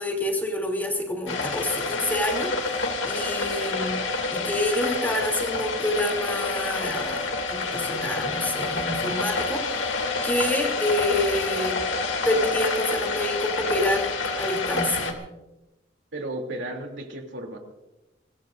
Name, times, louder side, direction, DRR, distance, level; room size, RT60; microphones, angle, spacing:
voice 1, 0.0-4.0 4.3-11.8 12.2-15.2, left 1 dB, 10° left, 1 dB, 3.1 m, -28 dB
sound 1, 1.3-15.1, left 3 dB, 90° left, 2.6 m, -28 dB
voice 2, 16.1-17.6, right 1 dB, 75° right, 2 dB, 3.1 m, -34 dB
24.0 x 20.0 x 2.6 m, 0.98 s
head